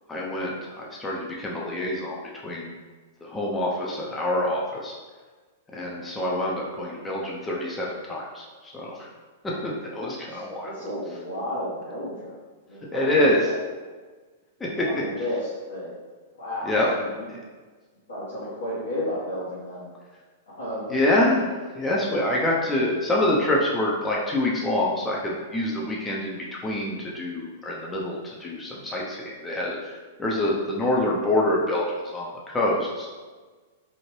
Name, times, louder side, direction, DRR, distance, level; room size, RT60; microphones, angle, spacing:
voice 1, 0.1-2.7 3.2-5.0 5.7-9.1 9.4-10.7 12.9-13.4 14.6-14.9 16.6-16.9 17.3-17.4 20.9-33.1, left 1 dB, 15° left, -4 dB, 0.6 m, -26 dB
voice 2, 10.3-12.3 12.6-13.5 14.8-15.9 16.3-17.3 18.1-19.9 20.5-21.0 22.3-22.4, left 1 dB, 70° left, -10 dB, 1.0 m, -33 dB
2.7 x 2.4 x 3.2 m, 1.4 s
hypercardioid pair, 110°, 0 cm